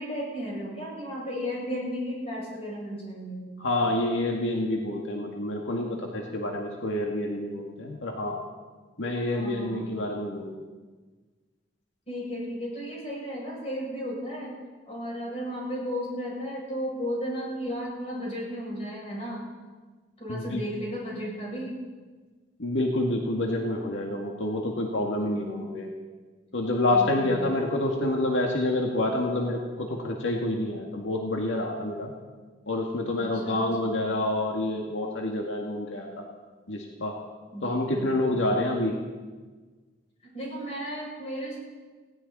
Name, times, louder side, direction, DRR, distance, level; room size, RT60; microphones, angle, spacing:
voice 1, 0.0-3.6 9.1-9.9 12.1-14.6 14.9-19.4 20.2-21.8 25.2-25.6 26.9-27.4 33.1-34.0 37.5-38.4 40.2-41.6, equal, 35° left, -4 dB, 7.0 m, -34 dB
voice 2, 3.6-8.4 9.0-10.6 20.3-20.6 22.6-25.9 26.5-32.1 32.7-36.1 36.7-37.1 37.6-39.0, left 1 dB, 85° left, 0 dB, 1.9 m, -28 dB
18.5 x 17.5 x 4.2 m, 1.4 s
head